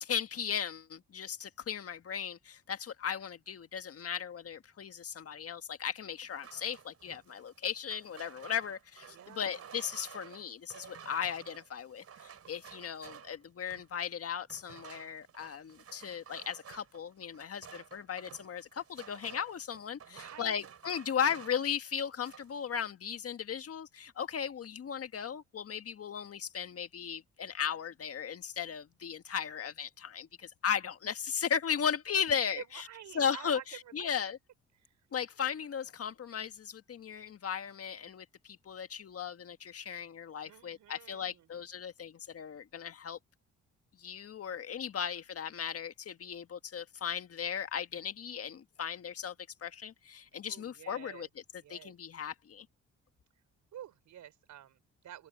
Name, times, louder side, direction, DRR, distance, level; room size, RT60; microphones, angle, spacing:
voice 1, 0.0-32.8 33.1-34.4 35.1-43.2 44.0-49.3 49.6-51.3 51.7-52.7, left 7 dB, 50° left, 1.6 m, -36 dB
sound 1, 6.2-14.0 14.5-21.7 22.0-22.6, right 8 dB, 55° right, 4.6 m, -53 dB
voice 2, 9.1-9.7 20.1-20.6 32.3-34.1 34.8-35.0 40.4-41.5 50.4-51.3 51.6-51.9 53.7-55.3, right 11 dB, 75° right, 5.5 m, -50 dB
open air
cardioid pair, 90°, 30 cm